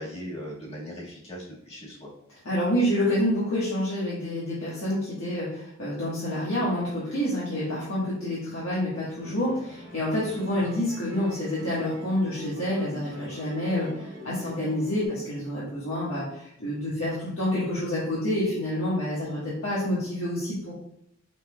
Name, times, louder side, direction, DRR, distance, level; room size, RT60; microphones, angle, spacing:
voice 1, 0.0-2.1 14.4-14.5, equal, 30° left, -5 dB, 1.6 m, -39 dB
voice 2, 2.4-20.7, left 1 dB, 75° left, -8 dB, 1.4 m, -28 dB
Musical instrument, 9.2-15.1, left 1 dB, 65° right, 1.4 m, -44 dB
5.9 x 3.4 x 2.2 m, 0.73 s
head